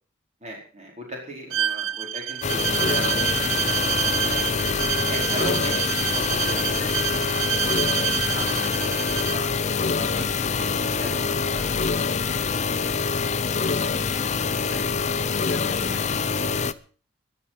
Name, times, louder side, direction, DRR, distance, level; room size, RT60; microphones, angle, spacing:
voice 1, 0.4-4.7 5.1-11.8, equal, 35° right, 0 dB, 4.7 m, -38 dB
Bowed string instrument, 1.5-9.4, right 10 dB, 85° right, 0.6 m, -27 dB
sound 1, 2.4-16.7, left 5 dB, 35° left, 0.6 m, -25 dB
voice 2, 13.7-16.3, left 1 dB, 5° right, 3 dB, 2.1 m, -45 dB
14.5 x 11.0 x 5.9 m, 0.40 s
head